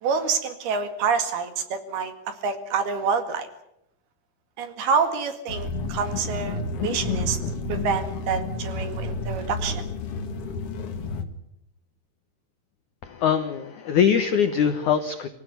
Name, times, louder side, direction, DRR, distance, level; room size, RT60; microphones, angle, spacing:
voice 1, 0.0-3.5 4.6-7.4 7.7-9.8, right 5 dB, 60° right, 8 dB, 3.7 m, -27 dB
sound 1, 5.5-11.2, left 3 dB, 50° left, 1.8 m, -30 dB
voice 2, 13.0-15.3, left 8 dB, 85° left, 8 dB, 1.7 m, -22 dB
26.0 x 16.5 x 9.4 m, 0.80 s
omnidirectional pair, 5.4 m